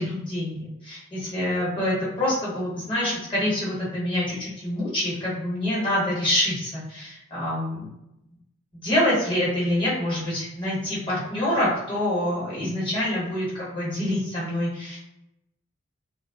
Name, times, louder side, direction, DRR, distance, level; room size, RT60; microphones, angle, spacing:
voice 1, 0.0-7.8 8.8-15.0, left 1 dB, 25° left, -8 dB, 1.2 m, -26 dB
2.2 x 2.1 x 3.4 m, 0.87 s
head